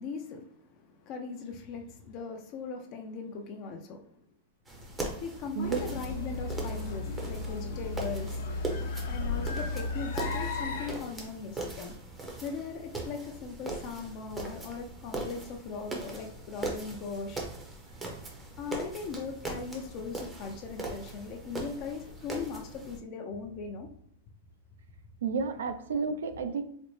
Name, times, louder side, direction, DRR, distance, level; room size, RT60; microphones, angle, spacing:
voice 1, 0.0-4.1 5.2-8.4 9.1-11.9 12.4-17.4 18.6-23.9, left 5 dB, 35° left, 3 dB, 0.5 m, -39 dB
sound 1, 4.7-23.0, right 2 dB, 10° right, 0.6 m, -40 dB
sound 2, 5.6-10.9, left 3 dB, 75° left, 0.8 m, -34 dB
voice 2, 25.2-26.6, right 5 dB, 85° right, 10 dB, 0.4 m, -31 dB
4.0 x 2.1 x 3.0 m, 0.70 s
supercardioid pair, 155°, 0 cm